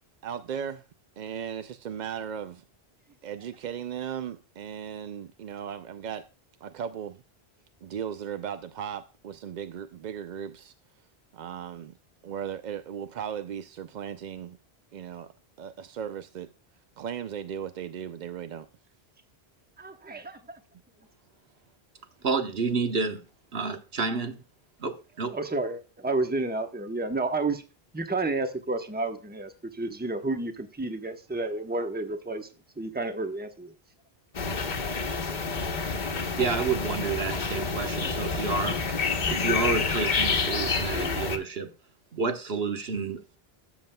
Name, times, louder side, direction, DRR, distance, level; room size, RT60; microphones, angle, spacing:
voice 1, 0.2-0.9 1.2-2.6 3.2-6.3 6.6-7.2 7.8-10.7 11.3-11.9 12.2-14.6 14.9-15.3 15.6-16.5 17.0-18.7, right 8 dB, 55° right, 0.5 m, -36 dB
voice 2, 19.8-20.4 25.3-27.6 27.9-32.5 32.8-33.7, right 2 dB, 10° right, 0.9 m, -31 dB
voice 3, 22.2-23.3 23.5-24.4 24.8-25.3 36.4-39.0 39.3-41.7 42.1-43.4, right 4 dB, 70° right, 1.3 m, -29 dB
sound 1, 34.3-41.4, left 4 dB, 50° left, 1.1 m, -28 dB
13.0 x 7.1 x 2.2 m
omnidirectional pair, 1.1 m